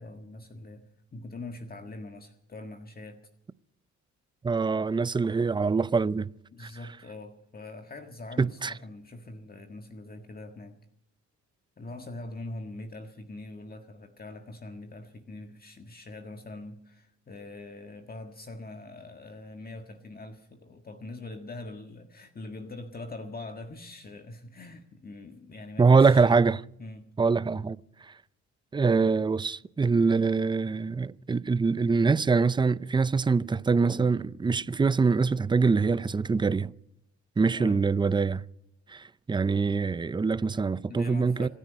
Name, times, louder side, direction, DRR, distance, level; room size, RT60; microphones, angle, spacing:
voice 1, 0.0-3.2 6.5-10.8 11.8-26.4 26.8-27.1 37.5-37.8 40.9-41.5, left 2 dB, 30° left, 1.7 m, -43 dB
voice 2, 4.4-6.3 6.6-6.7 8.4-8.7 25.8-26.6 27.2-27.8 28.7-36.7 37.4-38.4 38.9-41.5, right 4 dB, 15° right, 0.5 m, -24 dB
26.5 x 10.0 x 5.3 m
cardioid pair, 90°, 30 cm